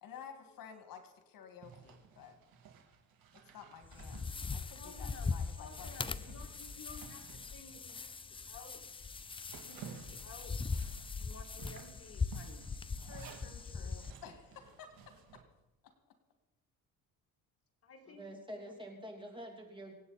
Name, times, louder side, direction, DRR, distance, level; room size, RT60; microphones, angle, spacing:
voice 1, 0.0-2.4 3.3-6.3 13.0-15.4 15.8-15.9, left 7 dB, 70° left, 6 dB, 2.1 m, -53 dB
Zipper (clothing), 1.6-8.2 8.6-8.7 9.1-15.4, right 6 dB, 75° right, 2.4 m, -55 dB
sound 1, 3.8-14.1, left 4 dB, 15° left, 0.4 m, -41 dB
voice 2, 4.7-8.8 9.5-10.7 11.2-12.7 17.8-18.2 18.5-18.7, left 4 dB, 40° left, 2 dB, 2.4 m, -54 dB
voice 3, 18.1-19.9, equal, 15° right, 1 dB, 3.0 m, -47 dB
26.0 x 8.7 x 4.2 m, 0.96 s
cardioid pair, 110°, 35 cm